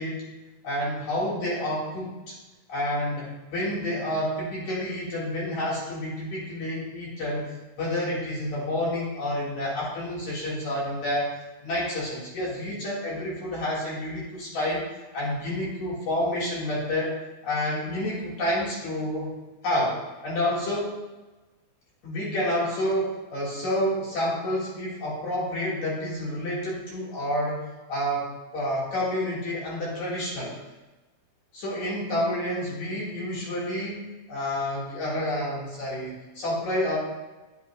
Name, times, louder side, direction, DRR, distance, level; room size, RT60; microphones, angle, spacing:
voice 1, 0.6-2.3 2.7-11.3 11.6-14.9 15.1-17.2 17.4-19.3 19.6-21.0 22.0-27.6 27.9-30.6 31.5-37.0, left 1 dB, 55° left, -6 dB, 2.8 m, -29 dB
10.5 x 8.1 x 2.2 m, 1.1 s
omnidirectional pair, 4.4 m